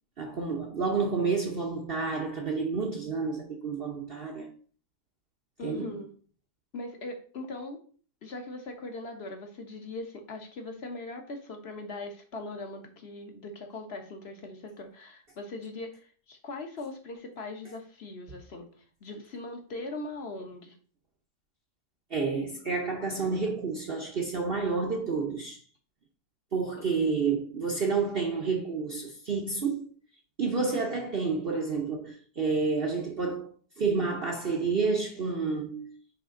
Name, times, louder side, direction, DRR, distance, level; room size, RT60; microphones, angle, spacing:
voice 1, 0.2-4.5 5.6-5.9 22.1-25.6 26.5-29.9 30.4-33.5 33.8-35.9, right 4 dB, 45° right, 0.9 m, -29 dB
voice 2, 5.6-6.1 6.7-7.8 8.2-18.7 19.0-20.7 26.7-26.8, left 2 dB, 45° left, 1.2 m, -40 dB
9.4 x 3.5 x 3.7 m
omnidirectional pair, 1.8 m